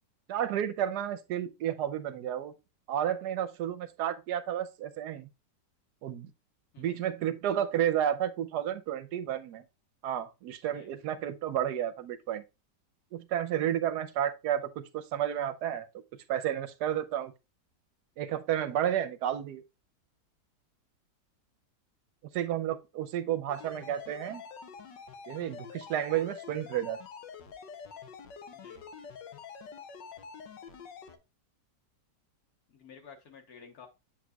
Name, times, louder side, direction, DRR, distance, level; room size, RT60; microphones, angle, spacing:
voice 1, 0.3-2.5 2.9-5.3 6.0-6.3 6.8-9.6 10.0-12.4 13.1-15.9 16.3-17.3 18.2-19.6 22.3-24.4 25.3-27.0, right 10 dB, 75° right, 1.1 m, -31 dB
voice 2, 6.7-7.1 10.7-10.9 28.5-28.9 32.7-33.9, left 6 dB, 60° left, 1.7 m, -52 dB
sound 1, 23.5-31.2, left 6 dB, 85° left, 1.5 m, -46 dB
8.1 x 6.1 x 2.3 m
omnidirectional pair, 1.8 m